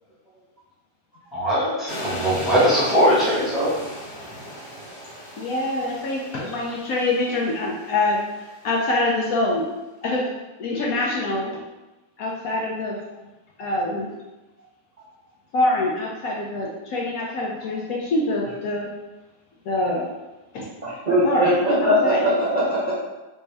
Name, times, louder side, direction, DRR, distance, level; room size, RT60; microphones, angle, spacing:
voice 1, 1.3-3.7, equal, ahead, -9 dB, 1.0 m, -20 dB
sound 1, 1.9-9.0, equal, 85° left, 1.7 m, -37 dB
voice 2, 5.4-8.2 8.6-9.7 10.0-10.2 10.6-11.6 12.2-12.9 13.6-14.1 15.5-18.9 19.7-20.1 20.5-20.7 21.2-22.2, left 2 dB, 70° left, -3 dB, 0.9 m, -25 dB
voice 3, 20.8-22.9, equal, 40° right, -9 dB, 0.6 m, -20 dB
3.2 x 2.6 x 3.3 m, 1.1 s
omnidirectional pair, 1.7 m